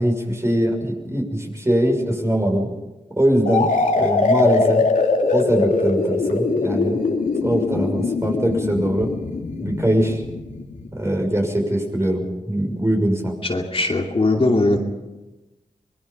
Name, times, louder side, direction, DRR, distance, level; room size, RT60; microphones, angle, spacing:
voice 1, 0.0-2.7 3.2-3.7 4.0-4.8 5.3-7.0 7.4-9.1 9.6-10.2 10.9-13.3, equal, 20° right, 2 dB, 6.4 m, -21 dB
sound 1, 3.5-11.1, left 3 dB, 85° left, 2.9 m, -22 dB
voice 2, 13.5-14.8, left 2 dB, 45° left, 1 dB, 2.7 m, -19 dB
24.5 x 21.0 x 5.6 m, 1.1 s
cardioid pair, 55°, 13 cm